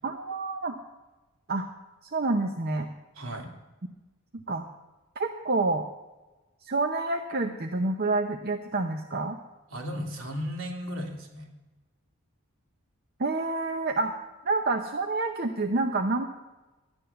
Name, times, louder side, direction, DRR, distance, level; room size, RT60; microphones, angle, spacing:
voice 1, 0.0-0.7 1.5-1.7 2.0-2.9 4.5-4.7 5.2-5.8 6.6-9.4 13.2-14.1 14.4-16.3, right 3 dB, 45° right, 4 dB, 0.7 m, -28 dB
voice 2, 3.2-3.5 9.7-11.5, equal, 65° right, 2 dB, 2.5 m, -35 dB
12.5 x 9.8 x 6.8 m, 1.1 s
head